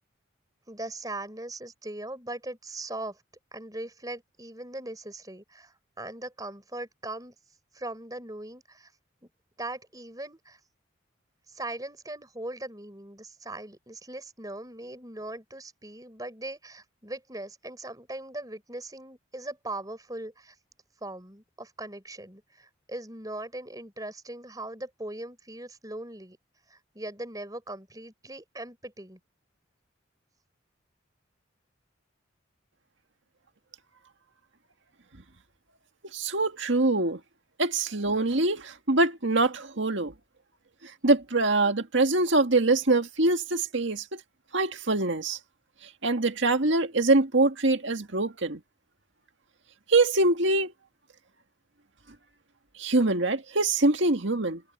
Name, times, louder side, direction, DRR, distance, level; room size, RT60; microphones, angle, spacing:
voice 1, 0.7-3.2 3.5-7.3 7.7-8.9 9.6-10.6 11.5-20.5 21.0-26.4 26.7-29.2, right 2 dB, 20° right, 5.1 m, -39 dB
voice 2, 36.1-37.2 37.6-40.1 40.8-44.2 44.5-45.4 46.0-48.6 49.9-50.7 52.8-54.6, right 2 dB, 65° right, 2.0 m, -24 dB
head